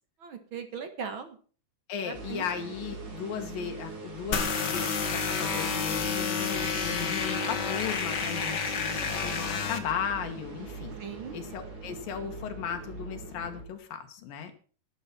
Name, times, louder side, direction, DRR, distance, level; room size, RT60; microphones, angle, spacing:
voice 1, 0.2-1.4 2.0-2.4 11.0-11.3, right 6 dB, 50° right, 8 dB, 1.7 m, -39 dB
voice 2, 1.9-11.0 11.3-14.5, left 8 dB, 85° left, 5 dB, 3.1 m, -36 dB
sound 1, 2.1-13.6, right 4 dB, 70° right, 5.6 m, -42 dB
sound 2, 4.3-9.8, left 5 dB, 45° left, 1.5 m, -30 dB
12.0 x 11.5 x 5.9 m, 0.41 s
omnidirectional pair, 3.9 m